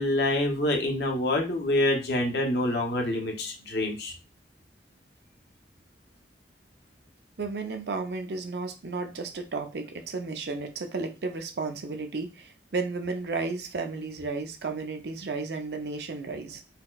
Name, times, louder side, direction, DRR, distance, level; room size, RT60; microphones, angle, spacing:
voice 1, 0.0-4.1, left 1 dB, 65° left, 1 dB, 0.7 m, -26 dB
voice 2, 7.4-16.6, right 3 dB, 65° right, 5 dB, 0.5 m, -33 dB
4.1 x 2.1 x 2.3 m, 0.29 s
head